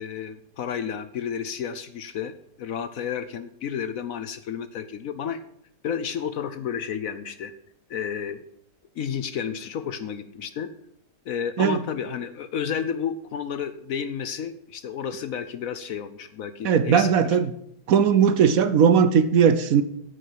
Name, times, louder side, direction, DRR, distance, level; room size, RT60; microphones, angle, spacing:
voice 1, 0.0-5.4 5.8-7.5 7.9-8.4 9.0-10.7 11.3-17.4, left 8 dB, 65° left, 12 dB, 1.0 m, -31 dB
voice 2, 16.6-17.5 17.9-19.8, right 7 dB, 65° right, 12 dB, 1.0 m, -18 dB
8.6 x 8.4 x 7.4 m, 0.72 s
omnidirectional pair, 1.8 m